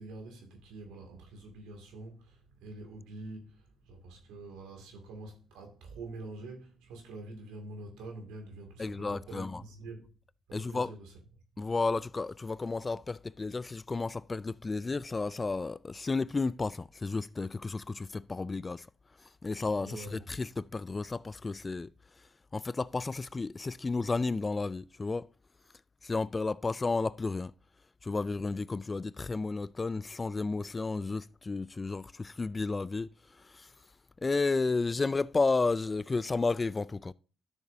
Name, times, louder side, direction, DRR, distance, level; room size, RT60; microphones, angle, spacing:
voice 1, 0.0-10.0 10.5-11.1 11.5-11.6 19.8-20.2, right 2 dB, 90° right, 2.3 m, -46 dB
voice 2, 8.8-9.6 10.5-10.9 11.6-18.9 19.4-21.9 22.5-25.3 26.0-27.5 28.0-33.1 33.4-33.7 34.2-37.1, left 3 dB, 30° left, 0.3 m, -32 dB
12.5 x 6.7 x 2.7 m
supercardioid pair, 70°, 0 cm